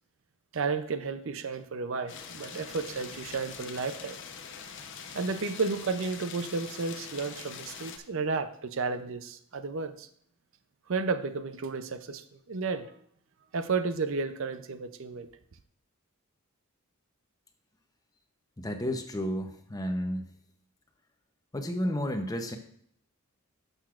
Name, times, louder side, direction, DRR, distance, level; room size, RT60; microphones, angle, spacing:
voice 1, 0.5-4.2 5.1-10.1 10.9-12.9 13.5-15.3, right 4 dB, 60° right, 11 dB, 0.5 m, -32 dB
sound 1, 2.1-8.0, left 6 dB, 55° left, 0.8 m, -43 dB
voice 2, 18.6-20.3 21.5-22.6, equal, 15° left, 6 dB, 0.7 m, -32 dB
11.5 x 6.6 x 2.4 m, 0.64 s
head